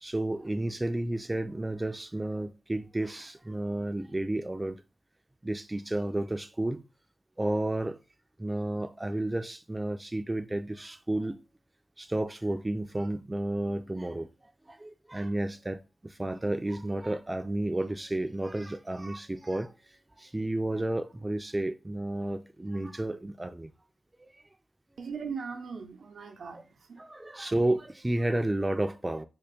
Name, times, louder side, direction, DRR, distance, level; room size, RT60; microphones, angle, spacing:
voice 1, 0.0-4.8 5.4-6.8 7.4-8.0 8.4-11.4 12.0-14.3 14.7-19.7 20.2-23.7 24.2-24.3 26.5-26.6 27.0-29.2, right 1 dB, 20° right, 0.3 m, -32 dB
voice 2, 25.0-27.0, right 5 dB, 90° right, 0.6 m, -39 dB
3.8 x 2.5 x 3.5 m
cardioid pair, 65°, 0 cm